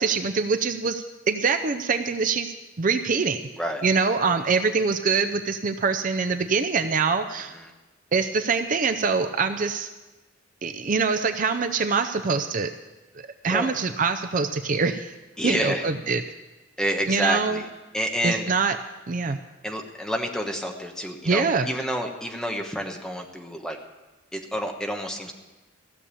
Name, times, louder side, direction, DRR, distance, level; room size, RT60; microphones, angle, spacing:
voice 1, 0.0-3.5 3.8-7.5 8.1-9.9 10.6-12.7 13.1-15.1 15.4-16.2 17.1-17.6 18.2-18.8 19.1-19.4 21.2-21.7, right 4 dB, 40° right, 8 dB, 0.5 m, -24 dB
voice 2, 15.4-15.9 16.8-17.6 17.9-18.5 19.6-23.8 24.3-25.3, equal, 5° left, 2 dB, 1.2 m, -29 dB
15.5 x 7.1 x 8.4 m, 1.1 s
head